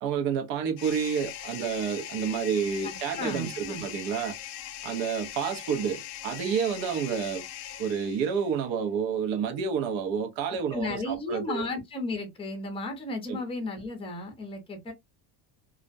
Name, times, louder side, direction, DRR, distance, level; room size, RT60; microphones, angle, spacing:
voice 1, 0.0-4.3 4.8-7.4 7.8-11.6 13.3-13.4, right 7 dB, 65° right, 0.9 m, -29 dB
sound 1, 0.8-8.5, left 11 dB, 65° left, 0.6 m, -40 dB
voice 2, 2.8-3.8 10.7-14.9, left 2 dB, 10° left, 0.6 m, -34 dB
2.4 x 2.1 x 2.5 m
cardioid pair, 140°, 48 cm